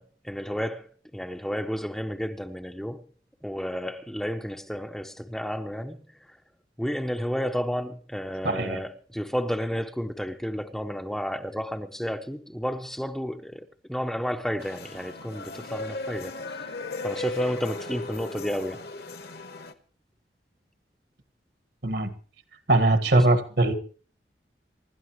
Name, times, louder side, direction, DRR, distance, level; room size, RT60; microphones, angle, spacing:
voice 1, 0.0-3.0 3.4-6.0 6.8-16.7 17.0-18.9 23.2-23.3, equal, ahead, 0.6 m, -32 dB
voice 2, 8.4-8.8 21.8-22.1 22.7-23.7, right 2 dB, 70° right, 1.6 m, -21 dB
sound 1, 14.6-19.7, left 2 dB, 60° left, 1.2 m, -36 dB
26.0 x 12.0 x 3.0 m
head